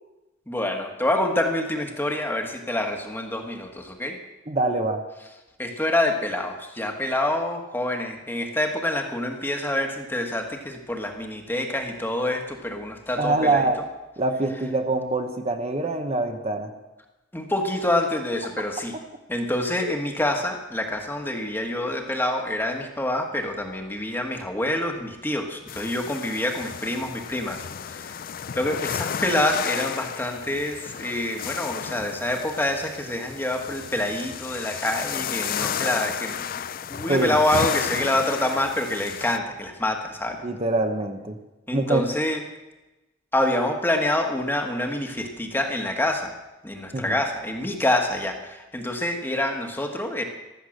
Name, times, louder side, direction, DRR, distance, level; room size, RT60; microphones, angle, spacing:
voice 1, 0.5-4.2 5.6-13.6 17.3-18.9 19.3-28.2 28.6-36.4 36.9-40.4 41.7-42.4 43.3-46.3 46.6-50.2, left 1 dB, 10° left, 3 dB, 1.5 m, -26 dB
voice 2, 4.5-5.0 13.2-13.8 14.2-16.7 37.1-37.4 40.4-41.4 41.7-42.0 46.9-47.2, right 2 dB, 35° right, 5 dB, 1.1 m, -24 dB
sound 1, 25.7-39.4, left 8 dB, 50° left, 0.4 m, -33 dB
15.0 x 13.0 x 6.5 m, 1.1 s
head